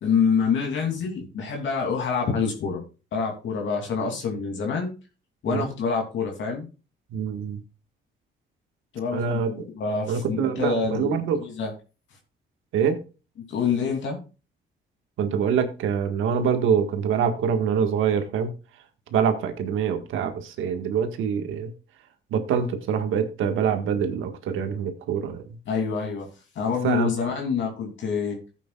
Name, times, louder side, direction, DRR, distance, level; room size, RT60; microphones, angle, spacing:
voice 1, 0.0-2.8 3.1-4.9 5.4-6.7 8.9-11.7 13.5-14.2 25.7-26.3 26.5-28.4, left 5 dB, 70° left, 1 dB, 2.9 m, -26 dB
voice 2, 7.1-7.6 9.1-9.5 10.1-11.4 12.7-13.0 15.2-18.5 19.1-21.7 22.3-25.4 26.8-27.1, right 7 dB, 85° right, 7 dB, 1.7 m, -25 dB
15.5 x 8.3 x 2.4 m, 0.32 s
cardioid pair, 90°, 20 cm